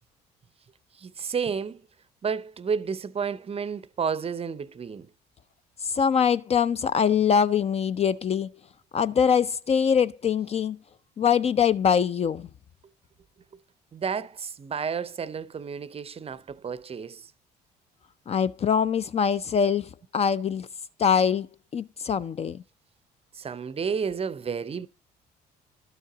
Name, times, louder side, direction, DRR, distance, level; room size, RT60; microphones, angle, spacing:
voice 1, 1.0-1.8 2.2-5.1 13.9-17.3 23.3-24.9, right 6 dB, 30° right, 0.5 m, -31 dB
voice 2, 5.8-8.5 8.9-10.8 11.2-12.5 18.3-20.7 21.0-21.5 21.7-22.6, left 7 dB, 30° left, 0.4 m, -23 dB
12.0 x 6.4 x 3.8 m
hypercardioid pair, 55°, 20 cm